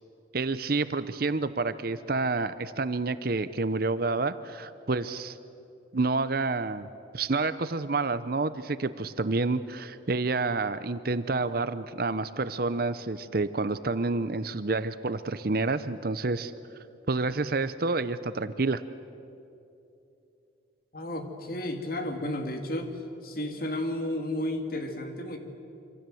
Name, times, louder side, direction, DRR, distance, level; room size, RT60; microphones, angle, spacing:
voice 1, 0.3-5.4 5.9-6.9 7.1-16.5 17.1-18.8, right 3 dB, 50° right, 13 dB, 0.7 m, -29 dB
voice 2, 20.9-22.9 23.2-25.4, left 1 dB, 50° left, 5 dB, 2.5 m, -32 dB
26.0 x 26.0 x 7.8 m, 2.7 s
head